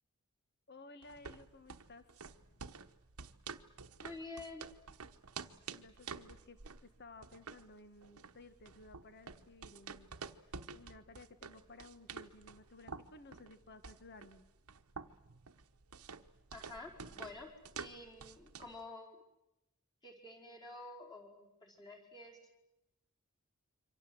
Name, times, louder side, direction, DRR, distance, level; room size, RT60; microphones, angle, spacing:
voice 1, 0.7-2.1 2.4-2.6 5.7-10.1 10.7-14.4, left 2 dB, 50° left, 11 dB, 1.6 m, -56 dB
sound 1, 1.0-18.8, right 5 dB, 80° right, 1.1 m, -50 dB
voice 2, 4.0-4.6 16.5-17.5 17.7-19.2 20.0-22.5, left 2 dB, 20° left, 1 dB, 4.9 m, -50 dB
27.0 x 24.5 x 7.9 m, 0.92 s
head